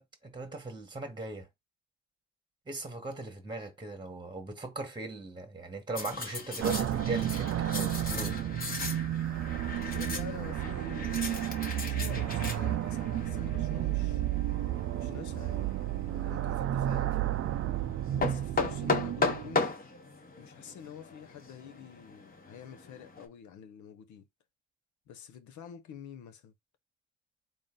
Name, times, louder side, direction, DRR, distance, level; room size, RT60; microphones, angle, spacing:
voice 1, 0.0-1.5 2.7-8.4, right 2 dB, 15° right, 1.3 m, -39 dB
sound 1, 5.9-23.3, left 4 dB, 30° left, 1.1 m, -38 dB
sound 2, 6.6-19.7, right 12 dB, 50° right, 0.4 m, -32 dB
voice 2, 9.9-14.3 14.9-15.8 16.1-17.4 18.1-19.8 20.4-24.3 25.1-26.5, left 8 dB, 75° left, 0.8 m, -48 dB
3.9 x 2.6 x 3.7 m
cardioid pair, 90°, 30 cm